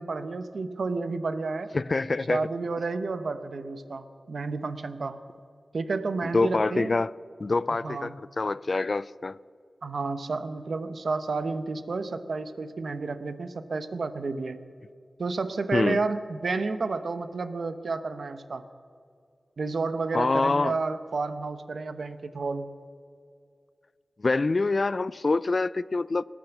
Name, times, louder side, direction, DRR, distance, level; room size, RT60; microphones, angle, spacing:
voice 1, 0.0-1.7 2.3-5.2 5.7-7.0 7.7-8.1 9.8-14.6 15.2-18.6 19.6-22.7, right 3 dB, 75° right, 0.8 m, -31 dB
voice 2, 1.7-2.4 6.3-7.1 7.4-9.4 15.7-16.0 20.1-20.7 24.2-26.2, left 3 dB, 55° left, 0.3 m, -25 dB
18.5 x 10.0 x 7.1 m
cardioid pair, 45°, 0 cm